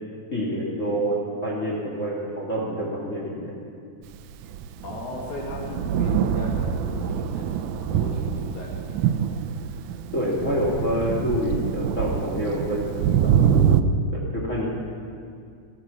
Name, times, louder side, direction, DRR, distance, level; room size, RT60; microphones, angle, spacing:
voice 1, 0.3-1.2 1.4-3.4 10.1-13.8 14.1-14.7, equal, 25° left, -5 dB, 2.7 m, -27 dB
Thunder, 4.3-13.8, right 8 dB, 85° right, 2.1 m, -25 dB
voice 2, 4.8-9.3, left 1 dB, 75° left, -1 dB, 3.1 m, -37 dB
14.5 x 13.0 x 7.2 m, 2.3 s
omnidirectional pair, 3.5 m